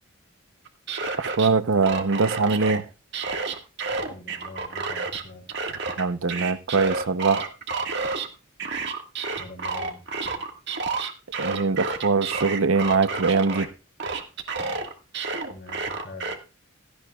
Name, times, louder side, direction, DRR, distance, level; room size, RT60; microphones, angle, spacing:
sound 1, 0.6-1.5 1.8-2.8 3.1-5.2 5.5-8.3 8.6-13.7 14.0-16.4, right 4 dB, 55° right, 1.7 m, -30 dB
voice 1, 1.2-2.8 6.0-7.5 11.4-13.7, right 4 dB, 80° right, 0.8 m, -22 dB
voice 2, 4.1-5.4 9.4-10.0 15.5-16.3, left 2 dB, 50° left, 4.4 m, -43 dB
16.5 x 15.0 x 2.3 m
head